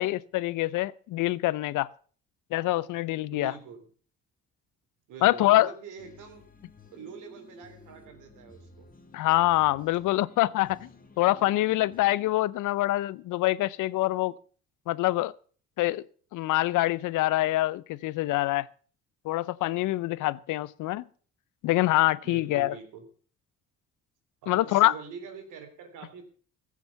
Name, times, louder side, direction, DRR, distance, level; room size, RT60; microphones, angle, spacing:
voice 1, 0.0-1.9 2.5-3.5 5.2-5.7 9.1-10.9 11.2-14.4 14.9-15.3 15.8-16.0 16.3-18.7 19.2-21.0 21.6-22.7 24.5-24.9, left 17 dB, 85° left, 0.6 m, -25 dB
voice 2, 3.3-3.9 5.1-6.4 6.9-8.9 22.2-23.0 24.4-26.2, right 6 dB, 85° right, 3.4 m, -44 dB
sound 1, 6.0-12.3, left 2 dB, 30° left, 2.0 m, -53 dB
15.5 x 7.3 x 6.9 m
cardioid pair, 90°, 30 cm